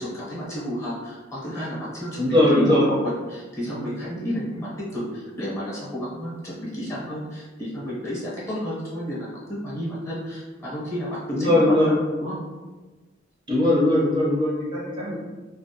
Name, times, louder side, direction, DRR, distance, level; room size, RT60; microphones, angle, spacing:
voice 1, 0.0-12.4, equal, 15° left, -8 dB, 0.8 m, -31 dB
voice 2, 2.2-2.9 11.3-11.9 13.5-15.1, left 1 dB, 25° right, -8 dB, 0.6 m, -20 dB
2.4 x 2.1 x 2.7 m, 1.2 s
head